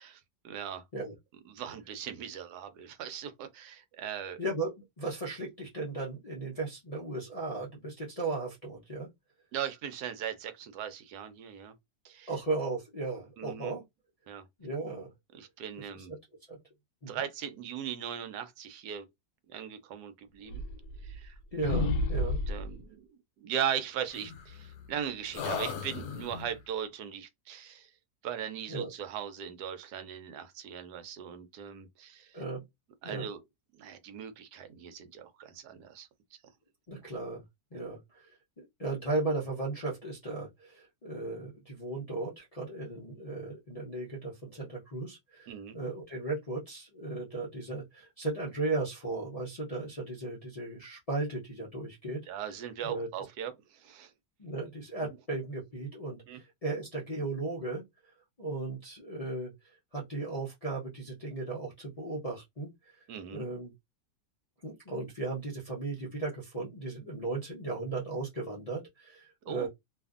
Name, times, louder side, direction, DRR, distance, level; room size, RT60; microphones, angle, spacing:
voice 1, 0.4-0.8 1.5-4.4 9.5-11.7 12.0-12.3 13.4-13.7 14.3-14.4 15.3-16.1 17.1-19.1 19.5-20.6 21.0-21.4 22.5-27.9 28.2-32.3 33.0-33.4 33.8-36.1 45.5-45.8 52.3-54.1 56.3-56.4 63.1-63.5 69.5-69.7, right 9 dB, 75° right, 1.1 m, -39 dB
voice 2, 4.4-9.1 12.3-13.8 14.6-15.1 15.8-16.2 16.5-16.6 17.0-17.2 21.5-22.4 28.7-28.9 32.3-32.6 33.0-33.3 36.9-37.4 37.7-38.3 38.6-52.2 52.8-53.1 54.4-57.8 58.4-59.5 59.9-63.7 64.6-69.7, right 3 dB, 60° left, 0.4 m, -36 dB
sound 1, 20.5-21.3 21.6-22.8 24.1-25.0 25.3-26.6, left 2 dB, 75° left, 1.1 m, -33 dB
2.7 x 2.4 x 2.4 m
omnidirectional pair, 1.8 m